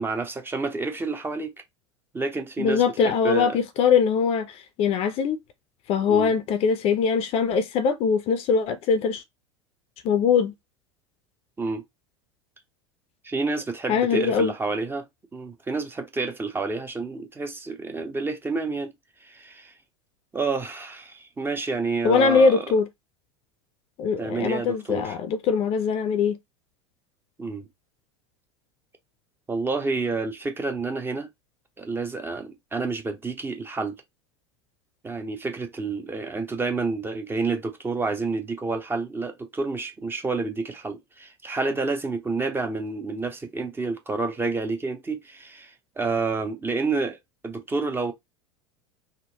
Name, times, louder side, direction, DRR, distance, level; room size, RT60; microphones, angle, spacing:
voice 1, 0.0-1.5 2.1-3.6 6.1-6.3 11.6-11.8 13.2-15.0 15.3-18.9 19.2-19.7 20.3-22.7 24.2-25.2 27.4-27.7 29.5-31.3 31.8-34.0 35.0-47.2 47.4-48.1, right 3 dB, 15° right, 0.7 m, -29 dB
voice 2, 2.6-5.4 5.9-9.2 10.0-10.5 13.9-14.5 22.0-22.9 24.0-26.4, left 6 dB, 40° left, 0.6 m, -22 dB
3.6 x 2.1 x 2.8 m
figure-of-eight pair, 80°, 15 cm